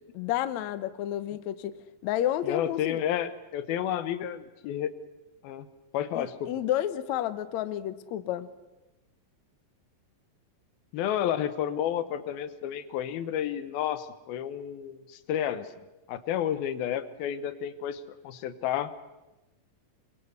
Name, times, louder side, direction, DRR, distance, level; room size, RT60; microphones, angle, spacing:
voice 1, 0.2-1.7 2.0-3.0 6.1-8.5, left 12 dB, 65° left, 13 dB, 2.0 m, -30 dB
voice 2, 2.4-4.9 5.4-5.7 5.9-6.5 10.9-15.7 16.1-18.9, left 10 dB, 85° left, 13 dB, 3.0 m, -31 dB
28.5 x 22.0 x 8.2 m, 1.0 s
omnidirectional pair, 4.1 m